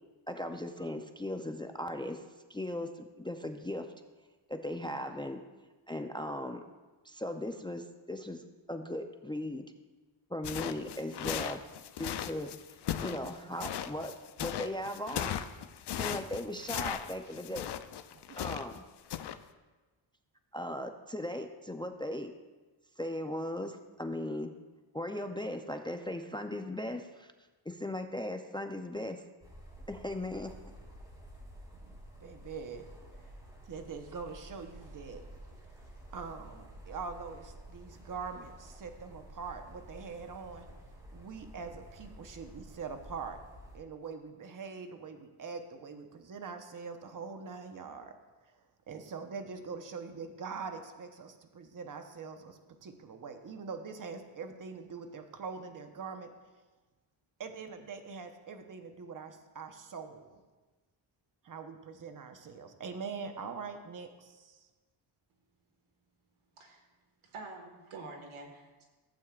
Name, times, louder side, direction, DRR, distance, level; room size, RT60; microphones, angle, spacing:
voice 1, 0.3-2.2 2.5-3.9 4.5-5.4 5.9-6.6 7.0-9.6 10.3-11.6 12.0-12.5 13.0-14.1 14.4-15.4 15.9-17.7 18.4-18.8 20.5-22.3 23.0-24.5 24.9-27.3 27.7-29.2 29.9-30.5, left 1 dB, 10° left, 6 dB, 0.4 m, -38 dB
sound 1, 10.4-18.8 19.1-19.4, left 10 dB, 55° left, 0.6 m, -37 dB
sound 2, 29.4-43.8, right 1 dB, 10° right, 2.6 m, -51 dB
voice 2, 31.8-32.8 33.7-35.2 36.1-40.7 41.1-43.4 43.7-48.1 48.9-56.3 57.4-60.3 61.4-64.6, right 5 dB, 40° right, 6 dB, 1.0 m, -43 dB
voice 3, 67.2-68.8, right 3 dB, 85° right, 2 dB, 1.7 m, -47 dB
15.0 x 8.2 x 2.4 m, 1.2 s
cardioid pair, 85°, 48 cm